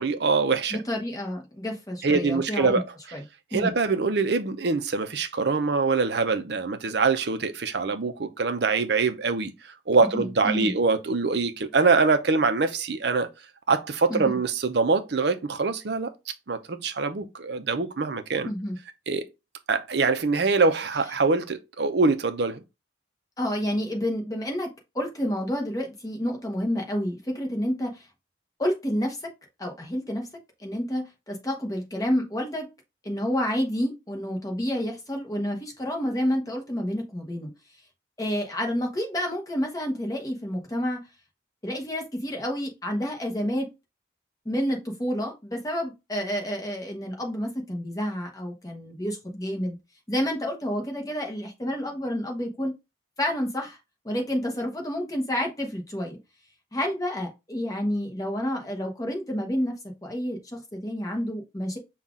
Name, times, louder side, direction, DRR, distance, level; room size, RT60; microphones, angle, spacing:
voice 1, 0.0-0.8 2.0-2.9 3.5-9.5 9.9-13.3 13.7-16.1 16.5-18.5 19.1-19.3 19.7-22.6, right 4 dB, 60° right, 0.6 m, -24 dB
voice 2, 0.7-2.8 3.1-3.2 3.5-3.7 10.1-10.7 14.1-14.4 18.4-18.8 23.4-28.1 28.6-29.3 29.6-30.3 30.6-32.7 33.0-37.5 38.2-41.0 41.6-43.7 44.4-49.8 50.1-52.7 53.2-53.8 54.0-56.2 56.7-59.7 60.0-61.8, equal, 20° left, 0.9 m, -29 dB
5.6 x 2.4 x 3.6 m
head